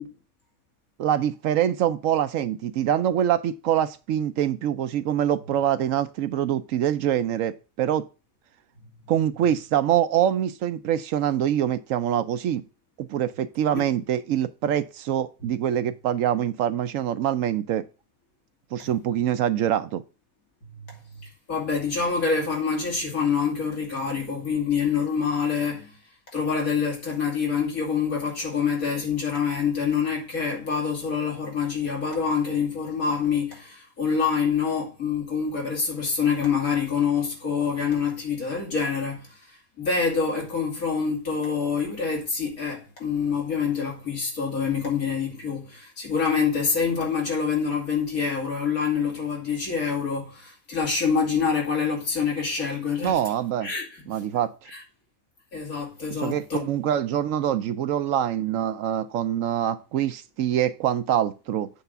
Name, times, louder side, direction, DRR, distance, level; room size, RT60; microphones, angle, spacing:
voice 1, 1.0-8.1 9.1-12.6 13.0-17.9 18.7-20.0 53.0-53.7 54.1-54.5 56.2-61.7, right 10 dB, 70° right, 0.9 m, -25 dB
voice 2, 21.5-25.9 26.3-39.2 39.8-53.2 53.6-53.8 54.7-54.8 55.5-56.7, left 6 dB, 75° left, 2.9 m, -26 dB
8.3 x 3.5 x 6.7 m
omnidirectional pair, 1.5 m